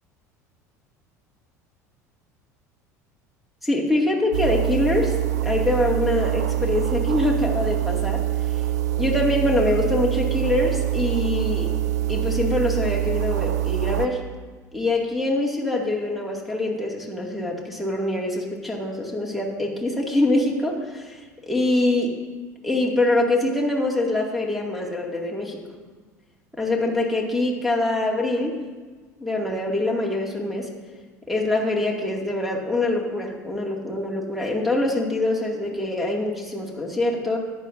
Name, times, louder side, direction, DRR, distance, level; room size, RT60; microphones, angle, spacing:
voice 1, 3.6-5.2 5.4-8.2 9.0-11.7 12.1-14.2 14.7-22.1 22.6-25.6 26.6-28.6 29.2-30.7 31.3-37.4, left 2 dB, ahead, -1 dB, 2.3 m, -24 dB
sound 1, 4.3-14.1, right 13 dB, 75° right, 0.5 m, -24 dB
14.0 x 10.5 x 2.7 m, 1.4 s
hypercardioid pair, 70°, 9 cm